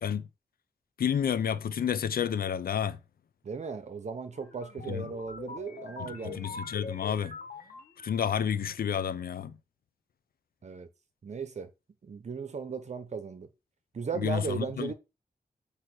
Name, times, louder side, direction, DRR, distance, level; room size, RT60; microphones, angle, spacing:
voice 1, 1.0-3.0 4.9-5.1 6.0-7.4 8.0-9.5 14.2-14.9, left 8 dB, 90° left, 0.6 m, -30 dB
voice 2, 3.4-6.6 10.6-10.9 11.2-11.7 12.0-13.5 13.9-14.9, right 5 dB, 50° right, 0.8 m, -36 dB
sound 1, 4.3-8.5, left 4 dB, 65° left, 1.4 m, -44 dB
8.2 x 3.1 x 6.1 m
wide cardioid pair, 165°, 15 cm